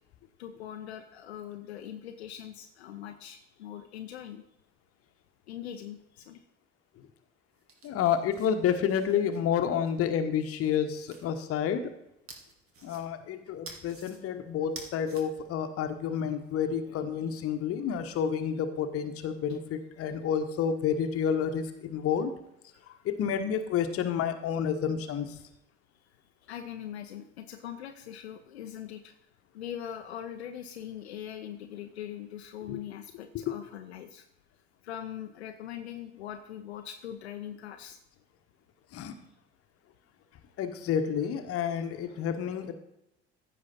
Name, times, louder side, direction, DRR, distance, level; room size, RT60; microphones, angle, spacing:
voice 1, 0.4-4.4 5.5-6.4 16.2-16.4 16.7-17.0 19.5-19.6 22.7-23.1 26.4-29.1 29.5-34.3 34.8-38.0, left 10 dB, 70° left, 5 dB, 0.7 m, -42 dB
sound 1, 7.5-9.9 10.4-11.3 12.3-13.3 13.6-14.2 14.6-15.2, right 4 dB, 40° right, 1.9 m, -49 dB
voice 2, 7.8-11.8 12.8-22.3 23.0-25.3 32.7-32.8 33.3-33.5 38.9-39.1 40.6-42.7, left 8 dB, 45° left, 8 dB, 1.2 m, -29 dB
15.0 x 5.1 x 4.2 m, 0.83 s
figure-of-eight pair, 60°, 33 cm